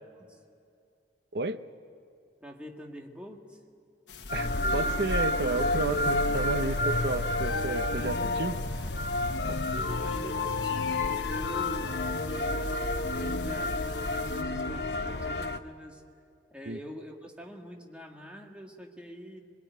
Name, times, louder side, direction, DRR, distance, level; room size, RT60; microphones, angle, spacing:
voice 1, 2.4-3.6 9.7-12.7 13.1-16.0 16.5-19.4, equal, 5° right, 1 dB, 1.9 m, -45 dB
sound 1, 4.1-14.4, left 4 dB, 85° left, 1.2 m, -45 dB
sound 2, 4.3-15.6, left 2 dB, 70° left, 0.9 m, -30 dB
voice 2, 4.3-8.6 9.5-9.6 16.7-16.8, right 3 dB, 65° right, 11 dB, 0.8 m, -32 dB
24.0 x 22.0 x 9.3 m, 2.5 s
head